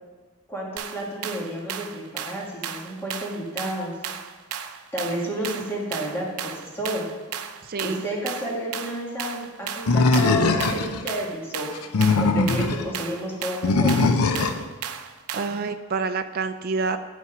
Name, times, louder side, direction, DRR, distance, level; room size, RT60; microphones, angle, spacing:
voice 1, 0.5-3.9 4.9-7.1 7.8-11.7 12.2-14.1, equal, 10° left, -3 dB, 1.7 m, -31 dB
sound 1, 0.8-15.7, right 8 dB, 85° right, 0.6 m, -35 dB
voice 2, 7.7-8.0 15.3-17.0, right 4 dB, 45° right, 7 dB, 0.4 m, -27 dB
Animal, 9.9-11.0 11.8-12.8 13.6-14.6, left 3 dB, 85° left, 0.6 m, -20 dB
9.5 x 5.7 x 6.0 m, 1.4 s
head